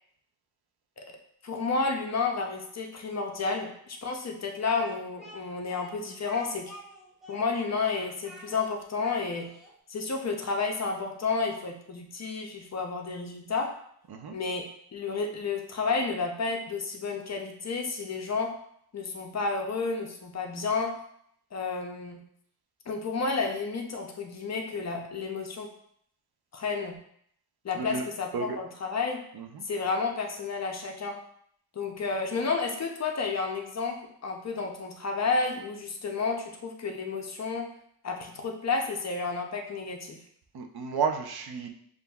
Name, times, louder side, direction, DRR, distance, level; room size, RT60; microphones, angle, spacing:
voice 1, 1.4-6.7 7.3-9.5 9.9-13.7 14.3-14.7 14.9-18.5 18.9-21.0 21.5-22.2 22.9-25.7 26.5-26.9 27.6-29.2 29.6-31.2 31.7-37.7 38.0-40.2, left 4 dB, 40° left, 2 dB, 0.5 m, -31 dB
Speech, 4.6-9.7, equal, ahead, 0.6 m, -49 dB
voice 2, 40.5-41.7, right 6 dB, 65° right, 4 dB, 0.5 m, -32 dB
6.9 x 2.4 x 2.3 m, 0.67 s
wide cardioid pair, 180°, 41 cm